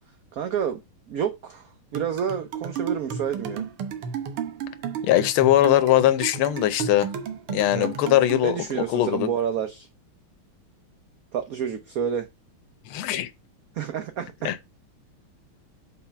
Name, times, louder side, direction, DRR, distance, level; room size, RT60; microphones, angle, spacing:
voice 1, 0.3-0.8 1.1-3.7 7.7-7.9 8.4-9.9 11.3-12.3 13.7-14.5, right 8 dB, 60° right, 1.0 m, -29 dB
sound 1, 1.9-8.5, right 7 dB, 80° right, 1.9 m, -33 dB
voice 2, 5.0-7.1 7.5-8.6 8.9-9.3 12.9-13.3 14.5-14.6, left 13 dB, 80° left, 1.6 m, -20 dB
5.6 x 4.6 x 5.8 m
omnidirectional pair, 2.3 m